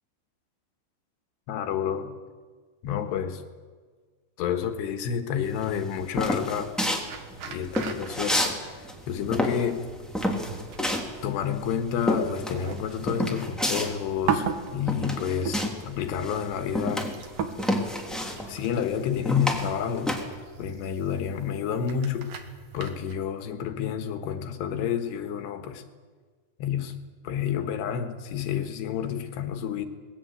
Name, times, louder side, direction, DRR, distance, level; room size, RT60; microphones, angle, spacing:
voice 1, 1.5-2.1 2.8-3.4 4.4-6.7 7.5-8.6 9.1-9.9 11.2-17.1 18.5-20.3 20.6-22.3 22.7-25.8 26.6-27.0 27.2-29.9, left 8 dB, 90° left, 7 dB, 3.6 m, -29 dB
sound 1, 5.6-8.6 8.8-15.9 16.2-20.2, left 1 dB, ahead, 2.2 m, -29 dB
sound 2, 7.1-23.2, right 7 dB, 60° right, 2.8 m, -38 dB
26.0 x 20.5 x 8.1 m, 1.5 s
omnidirectional pair, 4.7 m